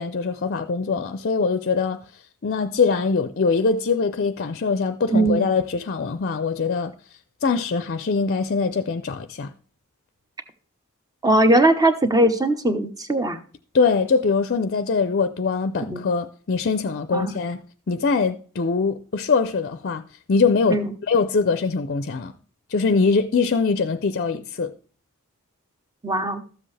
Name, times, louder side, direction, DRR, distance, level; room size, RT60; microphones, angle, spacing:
voice 1, 0.0-2.0 2.4-6.9 7.4-9.5 13.7-17.6 17.9-20.0 20.3-20.8 21.1-22.3 22.7-24.7, left 4 dB, 45° left, 0.5 m, -22 dB
voice 2, 5.1-5.5 11.2-13.4 15.9-16.0 17.1-17.4 20.7-20.9 26.0-26.4, right 1 dB, 15° right, 1.0 m, -20 dB
13.0 x 7.7 x 3.3 m
head